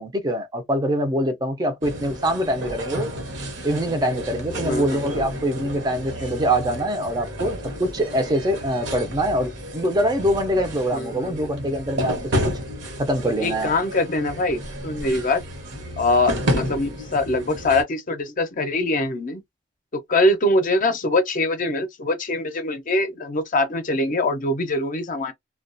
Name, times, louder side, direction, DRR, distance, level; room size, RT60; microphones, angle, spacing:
voice 1, 0.0-3.1 3.6-12.2 12.5-12.6 13.0-13.7, equal, 20° right, 0.5 m, -24 dB
sound 1, 1.8-17.8, equal, 70° right, 0.9 m, -31 dB
voice 2, 4.6-5.2 10.9-11.5 13.4-15.4 16.0-19.4 19.9-25.3, left 2 dB, 45° left, 0.5 m, -23 dB
2.3 x 2.2 x 2.5 m
head